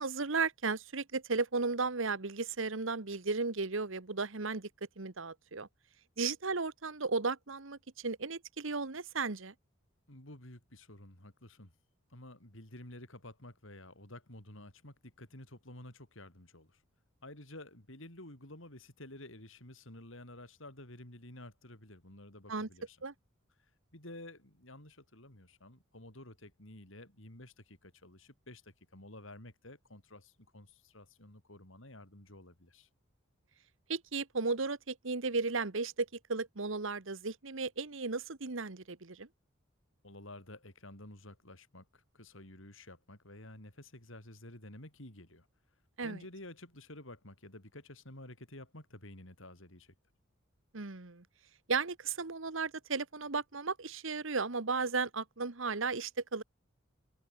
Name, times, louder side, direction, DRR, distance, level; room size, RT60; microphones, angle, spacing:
voice 1, 0.0-4.7 5.0-5.7 6.2-9.5 22.5-22.7 23.0-23.1 33.9-39.3 46.0-46.2 50.7-51.2 51.7-56.4, right 4 dB, 70° right, 1.3 m, -35 dB
voice 2, 10.1-11.7 12.1-16.8 17.2-23.0 23.9-32.9 40.0-45.5 46.0-49.9, left 1 dB, 70° left, 6.3 m, -51 dB
head